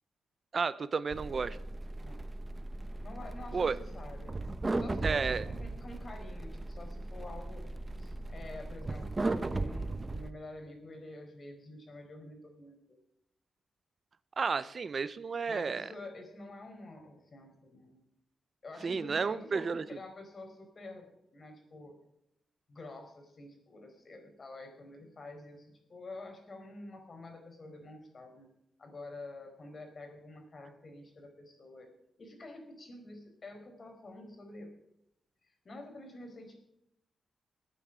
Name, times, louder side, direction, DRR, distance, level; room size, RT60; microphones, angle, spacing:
voice 1, 0.5-1.6 3.5-3.8 5.0-5.4 14.4-15.9 18.8-19.8, right 5 dB, 50° right, 15 dB, 0.6 m, -32 dB
sound 1, 1.1-10.3, right 2 dB, 25° right, 1.0 m, -37 dB
voice 2, 3.0-4.4 4.8-7.7 8.0-13.0 15.5-18.0 18.6-21.9 22.7-28.5 28.8-31.9 32.2-34.7 35.4-36.6, left 2 dB, 45° left, 4 dB, 4.5 m, -48 dB
20.0 x 9.1 x 5.0 m, 0.81 s
cardioid pair, 95°, 0 cm